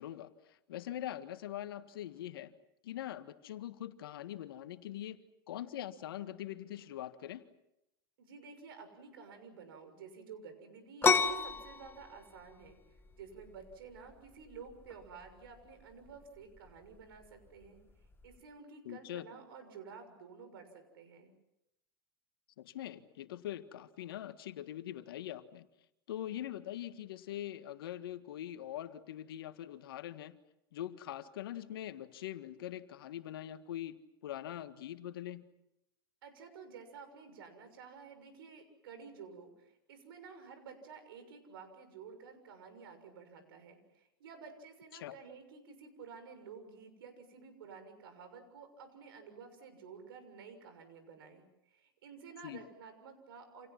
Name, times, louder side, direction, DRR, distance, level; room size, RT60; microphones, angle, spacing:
voice 1, 0.0-2.5 2.8-7.5 18.8-19.3 22.6-25.7 26.1-30.4 30.7-35.4 44.9-45.1 52.4-52.6, left 12 dB, 75° left, 10 dB, 1.7 m, -43 dB
voice 2, 8.2-17.8 18.2-21.3 36.2-53.7, right 5 dB, 75° right, 7 dB, 6.7 m, -52 dB
sound 1, 11.0-18.4, left 4 dB, 20° left, 2.0 m, -35 dB
29.5 x 28.0 x 6.0 m, 0.85 s
hypercardioid pair, 90°, 12 cm